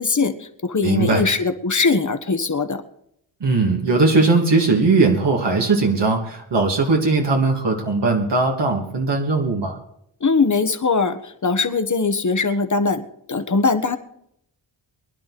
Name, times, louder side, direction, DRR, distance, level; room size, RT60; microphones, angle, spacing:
voice 1, 0.0-2.8 10.2-13.0 13.3-14.0, left 4 dB, 40° left, 9 dB, 1.6 m, -21 dB
voice 2, 0.8-1.2 3.4-9.8, right 3 dB, 65° right, 0 dB, 2.8 m, -19 dB
24.0 x 11.0 x 4.3 m, 0.73 s
wide cardioid pair, 90°, 45 cm